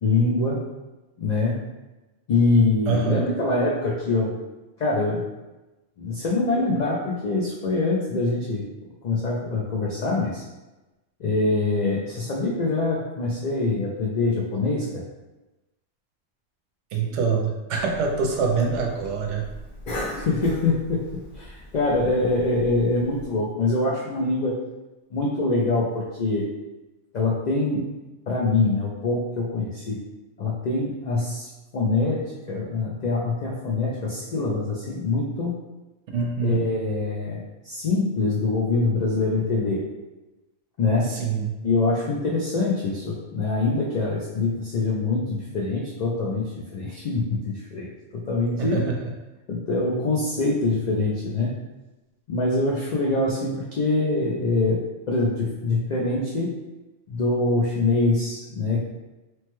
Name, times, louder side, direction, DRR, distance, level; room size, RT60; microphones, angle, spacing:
voice 1, 0.0-0.7 1.2-1.6 2.3-4.3 4.8-5.2 6.0-8.6 9.0-10.4 11.2-15.0 19.9-21.0 21.3-24.6 25.1-26.5 27.1-27.8 28.3-30.0 30.4-35.5 36.4-37.4 37.6-39.8 40.8-41.2 41.6-47.9 48.1-48.8 49.5-51.5 52.3-56.5 57.1-58.8, left 3 dB, 80° left, -4 dB, 0.4 m, -24 dB
voice 2, 2.9-3.2 16.9-19.5 36.1-36.6 41.0-41.6 48.6-49.1, right 5 dB, 70° right, 1 dB, 0.8 m, -25 dB
Cough, 17.8-23.2, left 1 dB, 50° left, 0.7 m, -38 dB
3.0 x 2.1 x 3.0 m, 1.1 s
omnidirectional pair, 1.3 m